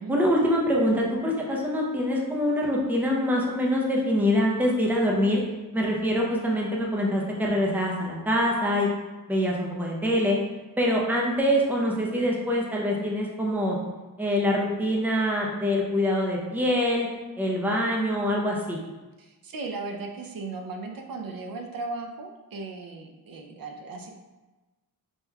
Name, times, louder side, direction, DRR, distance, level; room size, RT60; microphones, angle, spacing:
voice 1, 0.1-5.4 5.7-8.9 9.3-10.4 10.8-13.8 14.2-17.1 17.4-18.8, equal, 5° right, -2 dB, 0.6 m, -24 dB
voice 2, 19.2-24.1, right 3 dB, 70° right, 2 dB, 0.6 m, -36 dB
5.3 x 3.0 x 2.2 m, 1.2 s
wide cardioid pair, 120°, 36 cm